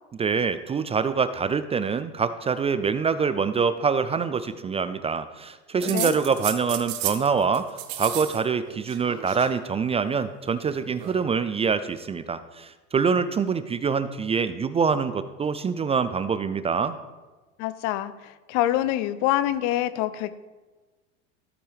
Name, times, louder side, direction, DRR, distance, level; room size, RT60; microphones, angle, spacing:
voice 1, 0.2-7.7 8.0-17.0, right 5 dB, 20° right, 13 dB, 0.4 m, -25 dB
sound 1, 5.8-7.3 7.5-8.4 8.7-9.5 10.6-11.2, right 13 dB, 65° right, 1.0 m, -33 dB
voice 2, 17.6-20.4, left 13 dB, 55° left, 15 dB, 0.6 m, -26 dB
14.0 x 8.6 x 3.5 m, 1.3 s
hypercardioid pair, 85°, 34 cm